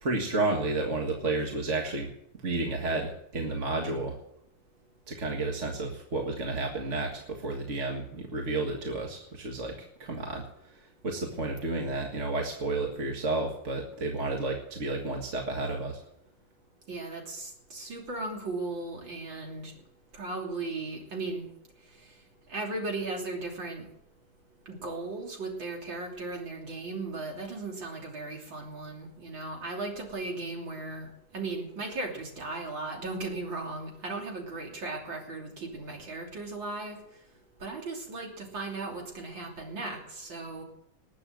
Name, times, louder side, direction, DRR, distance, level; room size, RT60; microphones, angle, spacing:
voice 1, 0.0-2.1 2.4-4.2 5.1-16.0, right 2 dB, 40° right, 1 dB, 2.0 m, -31 dB
voice 2, 16.9-19.7 20.1-21.5 22.5-23.9 24.7-37.0 37.6-40.6, right 3 dB, 85° right, 0 dB, 3.8 m, -36 dB
20.0 x 7.7 x 7.6 m, 0.76 s
omnidirectional pair, 2.0 m